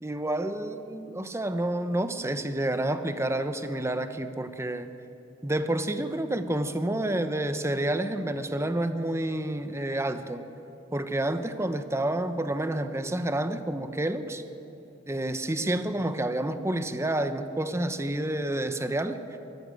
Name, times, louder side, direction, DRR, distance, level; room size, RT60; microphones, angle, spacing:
voice 1, 0.0-4.9 5.4-10.5 10.9-14.4 15.1-19.2, right 1 dB, 15° right, 9 dB, 1.0 m, -29 dB
23.5 x 13.5 x 9.1 m, 2.9 s
head